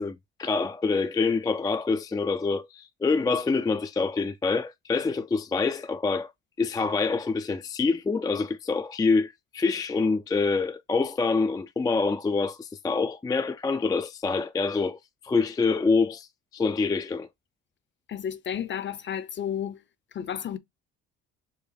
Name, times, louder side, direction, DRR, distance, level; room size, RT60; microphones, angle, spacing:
voice 1, 0.0-6.3 6.6-16.3 16.5-17.3, left 4 dB, 10° left, 0.3 m, -26 dB
voice 2, 18.1-19.8 20.1-20.6, left 9 dB, 35° left, 0.7 m, -32 dB
4.8 x 2.1 x 3.3 m
hypercardioid pair, 65°, 33 cm